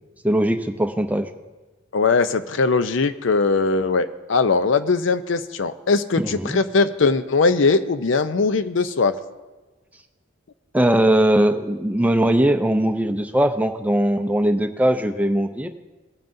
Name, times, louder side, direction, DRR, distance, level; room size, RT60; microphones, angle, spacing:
voice 1, 0.2-1.3 6.2-6.6 10.7-15.7, right 1 dB, 10° right, 7 dB, 0.5 m, -20 dB
voice 2, 1.9-9.1, left 4 dB, 70° left, 11 dB, 0.6 m, -20 dB
19.0 x 9.2 x 2.6 m, 1.2 s
head